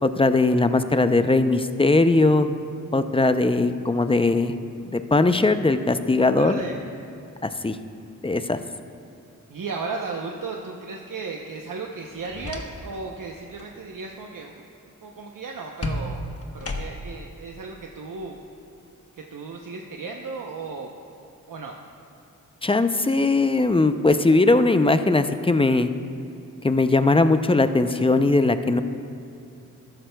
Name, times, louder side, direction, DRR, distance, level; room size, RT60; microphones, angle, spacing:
voice 1, 0.0-2.5 2.9-4.5 4.9-6.6 7.4-7.8 8.2-8.6 22.6-25.9 26.6-28.8, left 2 dB, 15° left, 10 dB, 0.5 m, -20 dB
voice 2, 6.4-6.8 9.5-14.6 15.0-16.2 16.5-18.4 19.2-20.9 21.5-21.7, right 4 dB, 70° right, 1 dB, 0.8 m, -35 dB
sound 1, 12.0-13.1 13.4-13.7 15.8-17.2, left 1 dB, 45° left, 1.1 m, -33 dB
13.5 x 12.5 x 2.3 m, 2.8 s
cardioid pair, 55°, 34 cm